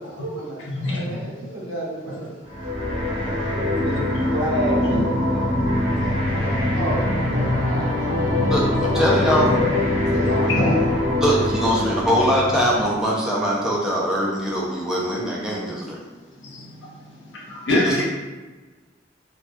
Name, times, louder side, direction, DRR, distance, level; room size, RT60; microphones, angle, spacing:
voice 1, 0.0-2.3 2.8-4.0 4.3-5.5 5.9-8.4 8.9-9.8 10.1-10.8, right 1 dB, 75° right, -7 dB, 0.9 m, -31 dB
voice 2, 0.7-1.1 3.3-3.4 4.9-5.0 6.5-6.6 9.5-9.6 10.5-10.8 15.5-15.6 16.4-16.8 17.3-18.0, left 1 dB, 75° left, -4 dB, 0.7 m, -24 dB
sound 1, 2.5-13.0, left 1 dB, 30° right, 0.8 m, -23 dB
voice 3, 8.5-9.5 11.2-16.0 17.8-18.0, equal, 5° right, -4 dB, 0.4 m, -22 dB
2.2 x 2.2 x 2.6 m, 1.3 s
head